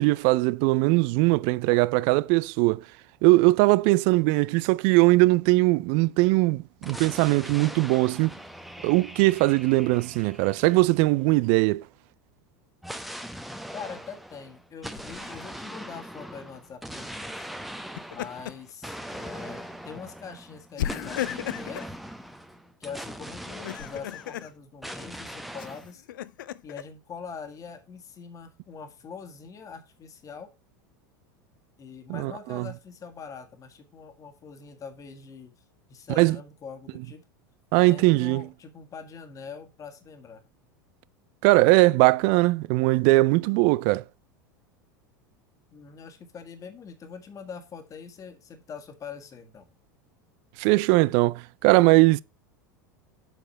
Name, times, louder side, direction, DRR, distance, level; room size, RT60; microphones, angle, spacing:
voice 1, 0.0-2.8 3.2-8.3 8.8-11.8 32.1-32.7 36.2-36.4 37.7-38.5 41.4-44.0 50.6-52.2, right 21 dB, 55° right, 0.4 m, -20 dB
sound 1, 6.8-11.5 12.8-24.5 24.8-25.9, equal, ahead, 0.8 m, -41 dB
voice 2, 13.7-17.5 18.1-22.0 22.8-26.1 26.6-30.5 31.8-35.6 35.9-37.2 37.7-40.4 45.7-49.7, left 6 dB, 30° left, 1.7 m, -43 dB
Laughter, 14.9-15.5 17.8-18.7 19.1-19.3 20.8-21.9 23.5-24.5 25.6-26.8, left 12 dB, 75° left, 0.5 m, -35 dB
7.8 x 4.7 x 5.6 m
hypercardioid pair, 90°, 11 cm